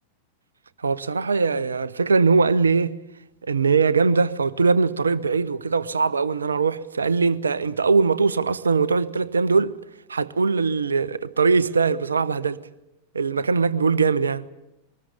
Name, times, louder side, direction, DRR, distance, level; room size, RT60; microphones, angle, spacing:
voice 1, 0.8-2.9 3.5-9.7 10.1-12.6 13.1-14.4, right 4 dB, 75° right, 0.8 m, -21 dB
23.0 x 20.0 x 9.6 m
figure-of-eight pair, 90°, 0 cm